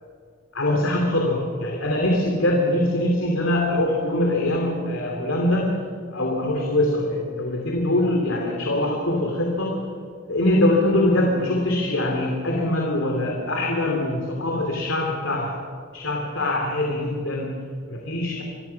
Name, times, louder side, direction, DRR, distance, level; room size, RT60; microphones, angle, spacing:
voice 1, 0.5-5.8 6.1-9.9 10.3-15.6 15.9-18.4, left 1 dB, 85° left, 0 dB, 3.0 m, -23 dB
27.0 x 22.5 x 5.9 m, 2.2 s
head